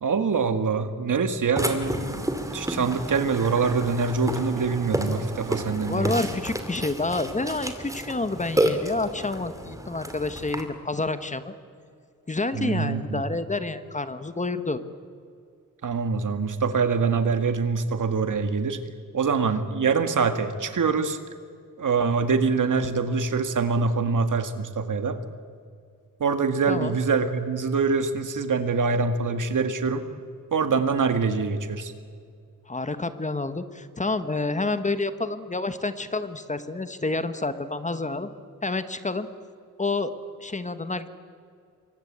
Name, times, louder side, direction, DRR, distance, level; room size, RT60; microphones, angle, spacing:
voice 1, 0.0-6.1 12.5-13.2 15.8-18.8 19.1-21.2 21.8-25.2 26.2-30.1 30.5-31.9, right 5 dB, 65° right, 9 dB, 1.9 m, -24 dB
Burping eructation, 1.6-10.6, right 1 dB, 10° right, 2.5 m, -30 dB
voice 2, 5.9-11.5 12.3-14.8 26.7-27.0 32.7-38.3 38.6-39.3 39.8-40.1 40.4-41.1, left 3 dB, 20° left, 11 dB, 1.2 m, -28 dB
27.5 x 24.0 x 8.8 m, 2.3 s
wide cardioid pair, 175°, 33 cm